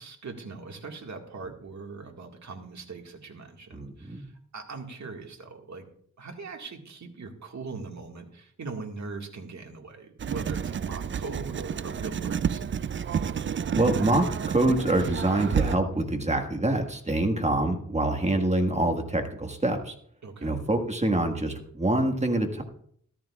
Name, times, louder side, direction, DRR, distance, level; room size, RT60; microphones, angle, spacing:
voice 1, 0.0-5.9 6.2-12.7 20.2-20.6, right 4 dB, 60° right, 2 dB, 1.9 m, -40 dB
voice 2, 3.7-4.3 13.8-19.9 20.4-22.6, right 2 dB, 20° right, 4 dB, 1.6 m, -25 dB
Writing, 10.2-15.8, right 7 dB, 40° right, 0.4 m, -30 dB
13.5 x 13.5 x 2.4 m, 0.63 s
wide cardioid pair, 85°, 32 cm